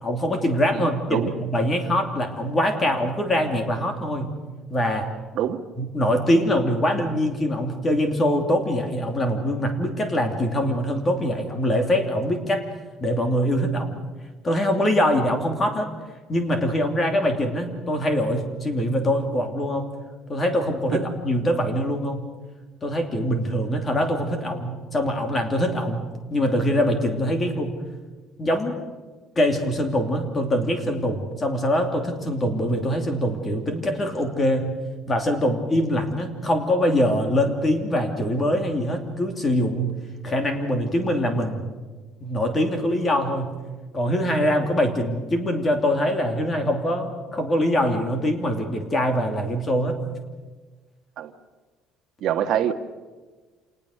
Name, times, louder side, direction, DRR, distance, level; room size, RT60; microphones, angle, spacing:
voice 1, 0.0-4.4 4.7-5.1 5.8-12.6 13.0-14.0 14.4-15.9 16.3-19.9 20.3-22.2 22.8-26.0 26.3-27.7 28.4-28.8 29.4-34.7 35.1-39.9 40.2-41.6 42.2-43.6 43.9-50.0, equal, 20° left, 2.8 m, -23 dB
voice 2, 0.7-1.3 5.3-5.6 20.9-21.0 51.2-51.3 52.2-52.7, right 10 dB, 50° right, 1.5 m, -25 dB
27.0 x 20.0 x 6.7 m
cardioid pair, 170°, 0 cm